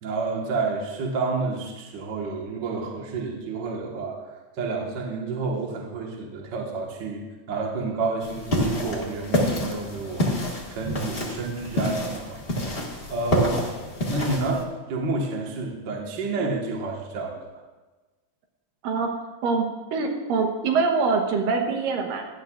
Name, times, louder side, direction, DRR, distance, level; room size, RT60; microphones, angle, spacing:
voice 1, 0.0-4.2 4.6-7.2 7.5-10.3 10.7-12.7 13.1-13.7 14.0-17.4, right 3 dB, 50° right, -1 dB, 1.3 m, -29 dB
sound 1, 8.2-14.6, left 1 dB, 40° left, 0.8 m, -28 dB
voice 2, 19.9-22.3, right 4 dB, 80° right, 3 dB, 2.7 m, -24 dB
16.0 x 11.5 x 2.4 m, 1.2 s
omnidirectional pair, 4.0 m